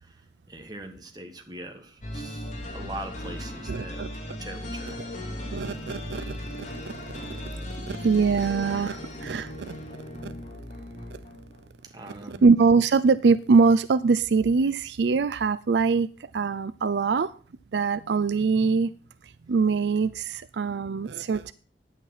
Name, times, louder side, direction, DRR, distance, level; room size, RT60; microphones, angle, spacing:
voice 1, 0.5-4.1 4.4-5.1 11.8-12.4, right 2 dB, 25° right, 5 dB, 1.5 m, -41 dB
sound 1, 2.0-11.8, left 1 dB, 45° left, 2.6 m, -37 dB
voice 2, 3.7-4.4 5.5-6.4 6.8-6.9 7.9-9.8 10.2-10.3 12.3-16.1 16.3-17.3 17.7-18.9 19.5-21.5, right 4 dB, 75° right, 14 dB, 0.4 m, -23 dB
9.9 x 8.8 x 5.6 m, 0.39 s
head